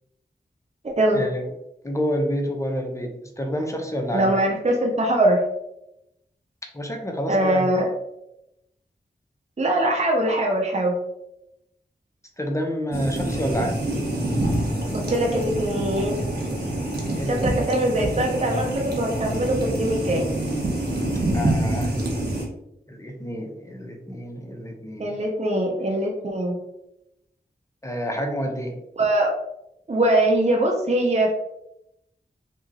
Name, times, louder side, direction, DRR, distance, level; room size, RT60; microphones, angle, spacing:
voice 1, 0.8-1.2 4.1-5.4 7.3-7.9 9.6-10.9 14.9-16.2 17.2-20.3 25.0-26.6 29.0-29.3 29.9-31.4, right 1 dB, 40° right, 0 dB, 0.6 m, -22 dB
voice 2, 1.8-4.3 6.7-7.7 12.4-13.8 17.2-17.6 21.3-21.9 22.9-25.1 27.8-28.8, equal, 15° left, 3 dB, 0.8 m, -28 dB
sound 1, 12.9-22.5, right 1 dB, 60° right, 1.1 m, -26 dB
2.9 x 2.4 x 3.9 m, 0.84 s
cardioid pair, 50°, 18 cm